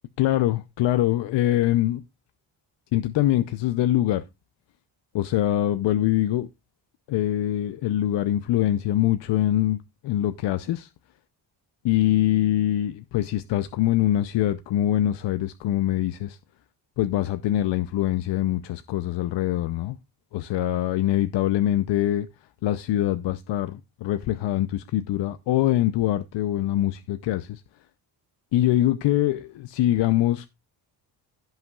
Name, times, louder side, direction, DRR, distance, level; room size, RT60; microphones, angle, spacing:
voice 1, 0.2-2.0 2.9-4.2 5.1-6.5 7.1-10.9 11.8-16.4 17.0-20.0 20.3-22.3 22.6-27.6 28.5-30.5, left 13 dB, 80° left, 0.6 m, -23 dB
16.0 x 5.6 x 2.3 m
cardioid pair, 160°, 42 cm